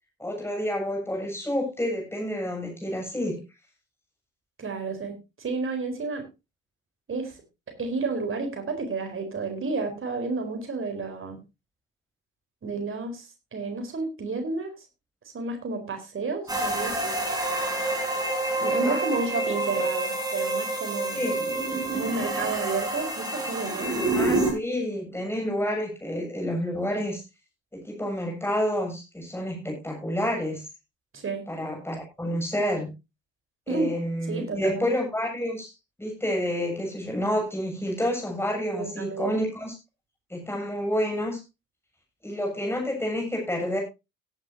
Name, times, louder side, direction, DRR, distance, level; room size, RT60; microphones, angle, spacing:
voice 1, 0.2-3.4 18.6-19.0 21.1-21.5 24.2-27.2 27.7-30.6 31.5-32.9 33.7-35.7 36.0-39.7 40.3-41.4 42.2-43.8, equal, 5° left, 1 dB, 7.4 m, -29 dB
voice 2, 4.6-6.2 7.1-7.4 7.8-11.4 12.6-14.7 15.3-17.1 18.6-21.3 21.9-24.1 31.1-31.4 33.7-33.9 34.3-34.9 38.7-39.4, right 3 dB, 30° right, 5 dB, 4.3 m, -31 dB
sound 1, 16.5-24.5, right 2 dB, 10° right, 6.3 m, -28 dB
17.0 x 10.0 x 2.8 m, 0.26 s
figure-of-eight pair, 55°, 41 cm